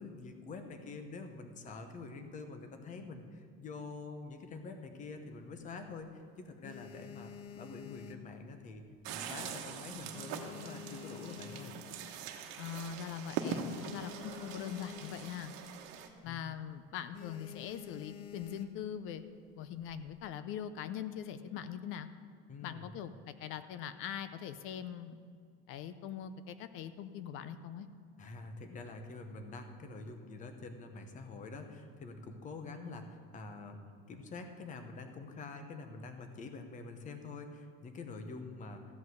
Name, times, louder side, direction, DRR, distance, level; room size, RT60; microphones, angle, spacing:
voice 1, 0.0-8.8 9.1-11.8 16.3-16.5 22.5-22.9 28.2-33.8 34.1-38.8, left 3 dB, 25° left, 7 dB, 0.9 m, -46 dB
sound 1, 5.3-6.0 6.4-8.9 9.2-9.6 9.9-12.1 12.6-12.7 12.9-13.0 13.3-15.5 15.8-16.1 16.4-16.7 17.1-19.0 19.7-20.3, left 8 dB, 85° left, 1.0 m, -50 dB
sound 2, 9.0-16.1, right 6 dB, 65° right, 1.2 m, -42 dB
voice 2, 12.6-15.5 16.2-19.2 19.6-22.1 22.6-25.2 25.7-27.9, left 9 dB, 45° left, 12 dB, 0.5 m, -42 dB
14.0 x 5.4 x 7.8 m, 2.2 s
cardioid pair, 165°, 31 cm